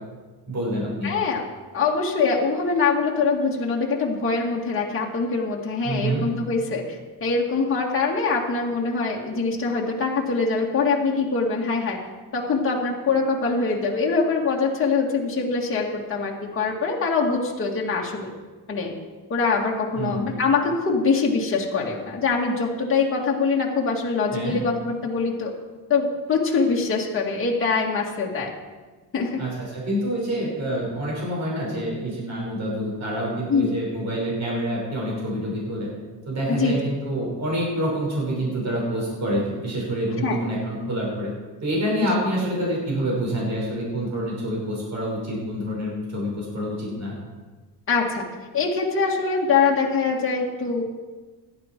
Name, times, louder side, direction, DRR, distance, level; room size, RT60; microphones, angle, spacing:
voice 1, 0.5-1.1 5.8-6.2 20.0-20.3 24.3-24.6 29.4-35.9 36.3-41.3 41.6-47.2, equal, 45° right, -3 dB, 5.7 m, -27 dB
voice 2, 1.0-1.4 1.7-12.0 12.3-18.3 18.7-18.9 19.3-25.5 25.9-28.5 29.1-29.4 33.5-33.8 36.5-36.8 40.2-40.4 42.0-42.1 47.9-48.3 48.5-50.9, left 4 dB, 30° left, -2 dB, 2.2 m, -23 dB
16.5 x 11.5 x 4.6 m, 1.3 s
cardioid pair, 140°, 39 cm